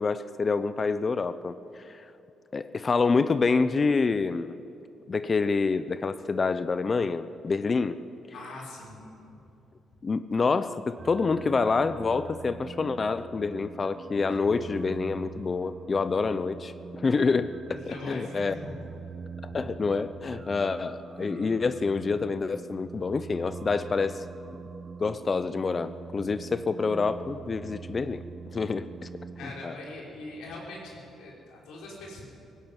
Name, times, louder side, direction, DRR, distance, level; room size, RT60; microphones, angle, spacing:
voice 1, 0.0-2.1 2.5-4.6 5.1-8.0 10.0-18.5 19.4-24.2 25.0-28.2 28.5-28.9 29.6-29.7, left 4 dB, 35° left, 13 dB, 0.7 m, -27 dB
voice 2, 8.3-9.1 17.7-18.8 19.5-19.6 29.4-32.2, left 2 dB, 85° left, -3 dB, 5.3 m, -42 dB
sound 1, 11.0-29.6, right 5 dB, 35° right, 0.7 m, -43 dB
sound 2, 14.2-15.1, equal, 15° left, 6.7 m, -55 dB
17.0 x 17.0 x 9.5 m, 2.8 s
cardioid pair, 90°, 0 cm